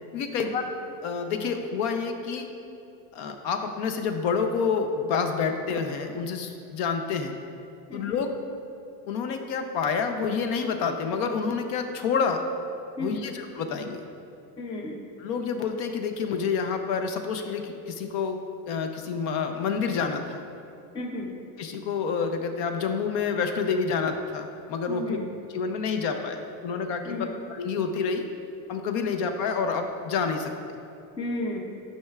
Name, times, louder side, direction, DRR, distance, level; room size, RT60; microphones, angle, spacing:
voice 1, 0.1-0.6 1.0-2.5 3.1-7.3 7.9-8.3 9.1-12.4 13.0-14.1 15.2-18.4 18.7-20.4 21.6-25.2 25.5-28.3 28.7-30.8, left 5 dB, 55° left, 6 dB, 0.7 m, -28 dB
voice 2, 13.0-13.3 14.6-15.0 20.9-21.3 24.9-25.3 27.1-27.3 31.2-31.6, left 2 dB, 10° left, 0 dB, 0.5 m, -33 dB
12.0 x 5.6 x 2.4 m, 2.6 s
supercardioid pair, 150°, 46 cm